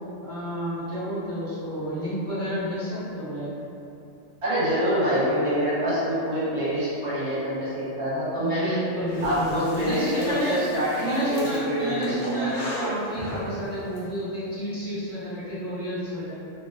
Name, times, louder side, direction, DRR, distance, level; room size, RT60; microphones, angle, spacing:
voice 1, 0.2-3.5 8.4-10.6 11.0-16.3, right 1 dB, 10° left, -15 dB, 1.0 m, -30 dB
voice 2, 4.4-8.8 9.2-12.5, equal, 60° right, -10 dB, 1.0 m, -26 dB
Breathing, 9.1-14.0, equal, 65° left, 0.9 m, -37 dB
2.6 x 2.1 x 2.4 m, 2.7 s
omnidirectional pair, 1.3 m